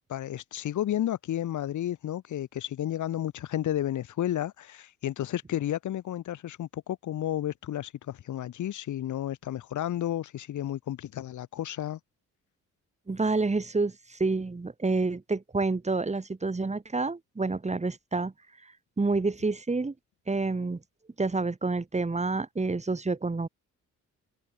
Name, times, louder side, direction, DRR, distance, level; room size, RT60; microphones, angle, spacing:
voice 1, 0.1-12.0, left 12 dB, 75° left, 7.4 m, -32 dB
voice 2, 13.1-18.3 19.0-19.9 20.3-20.8 21.2-23.5, right 3 dB, 20° right, 4.9 m, -28 dB
cardioid pair, 90°, 30 cm